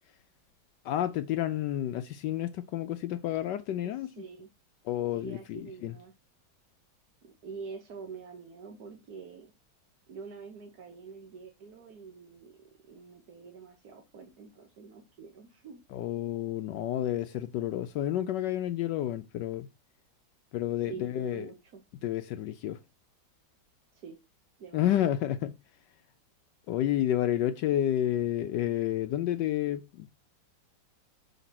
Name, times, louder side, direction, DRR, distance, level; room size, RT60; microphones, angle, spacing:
voice 1, 0.8-4.1 4.9-5.9 15.9-19.7 20.5-21.5 22.0-22.8 24.7-25.6 26.7-30.1, left 12 dB, 75° left, 1.1 m, -30 dB
voice 2, 3.8-4.5 5.1-6.1 7.2-9.5 10.1-12.5 12.9-15.8 20.8-21.8 23.9-24.2 24.6-25.1, right 5 dB, 55° right, 1.6 m, -46 dB
5.9 x 4.1 x 5.7 m
omnidirectional pair, 2.0 m